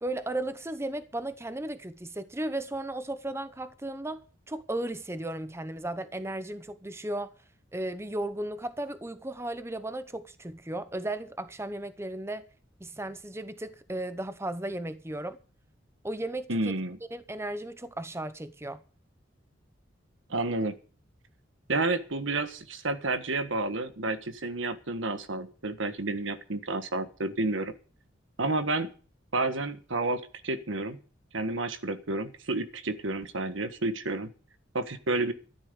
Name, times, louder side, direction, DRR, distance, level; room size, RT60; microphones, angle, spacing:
voice 1, 0.0-7.3 7.7-12.4 12.8-15.4 16.0-16.7 17.1-18.8, right 1 dB, 15° right, 0.8 m, -35 dB
voice 2, 16.5-17.0 20.3-20.7 21.7-27.7 28.4-28.9 29.3-31.0 31.3-34.3 34.7-35.3, right 2 dB, 80° right, 1.5 m, -30 dB
13.5 x 12.0 x 5.3 m
head